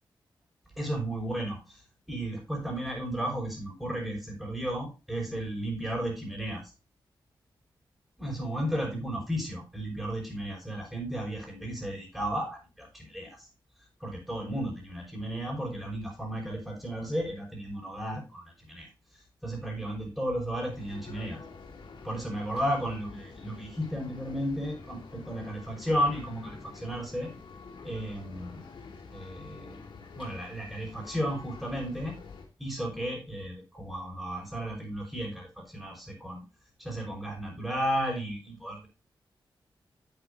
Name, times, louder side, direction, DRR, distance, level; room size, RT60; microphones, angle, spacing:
voice 1, 0.8-6.7 8.2-13.5 14.0-21.4 22.0-27.3 27.8-28.6 29.1-29.8 30.1-32.1 32.6-36.4 36.8-38.9, equal, 5° right, -5 dB, 5.1 m, -34 dB
sound 1, 20.7-32.5, left 4 dB, 90° left, 3.0 m, -47 dB
11.0 x 8.0 x 2.6 m, 0.31 s
wide cardioid pair, 100°, 8 cm